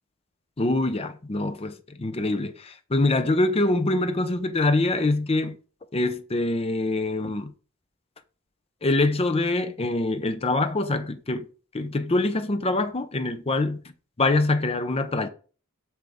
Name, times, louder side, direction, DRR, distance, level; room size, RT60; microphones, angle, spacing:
voice 1, 0.6-5.6 5.9-7.5 8.8-11.5 11.7-13.8 14.2-15.3, left 2 dB, 30° left, 0.6 m, -24 dB
7.6 x 6.2 x 3.6 m
head